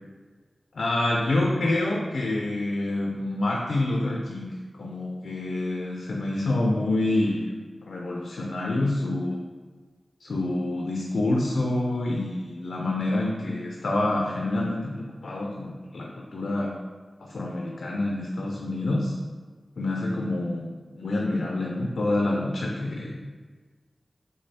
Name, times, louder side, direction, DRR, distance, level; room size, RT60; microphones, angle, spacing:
voice 1, 0.7-4.5 4.8-7.4 7.9-9.5 10.2-16.8 17.2-19.1 19.8-23.2, left 2 dB, 85° left, -1 dB, 0.5 m, -27 dB
3.7 x 3.2 x 4.1 m, 1.4 s
cardioid pair, 45°, 0 cm